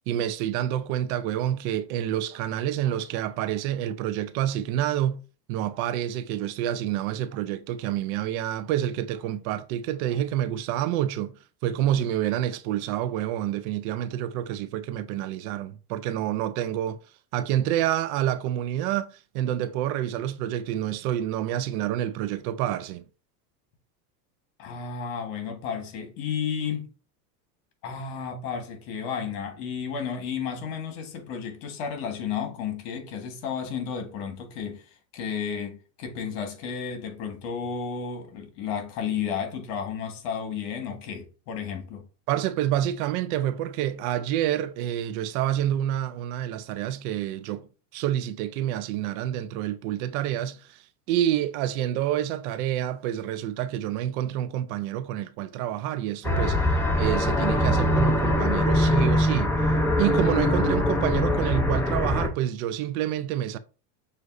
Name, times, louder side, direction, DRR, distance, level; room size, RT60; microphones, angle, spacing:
voice 1, 0.1-5.2 5.5-11.3 11.6-17.0 17.3-23.0 42.3-47.7 47.9-59.6 60.0-63.6, right 12 dB, 60° right, 0.5 m, -28 dB
voice 2, 24.6-26.9 27.8-42.1, left 7 dB, 60° left, 1.5 m, -32 dB
sound 1, 56.2-62.3, left 1 dB, 5° left, 0.5 m, -23 dB
6.4 x 2.6 x 2.6 m
supercardioid pair, 115°, 49 cm